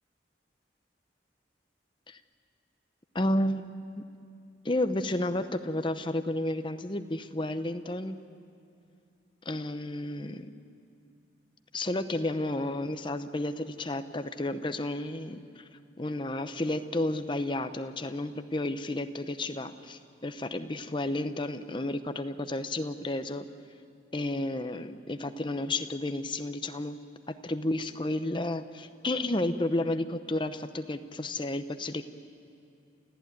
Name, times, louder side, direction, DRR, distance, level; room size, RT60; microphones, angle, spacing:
voice 1, 3.1-3.6 4.0-4.1 4.6-8.2 9.4-10.5 11.7-15.6 16.0-23.5 24.1-27.0 27.3-32.0, left 1 dB, 25° left, 9 dB, 0.8 m, -32 dB
29.0 x 14.5 x 9.4 m, 2.5 s
head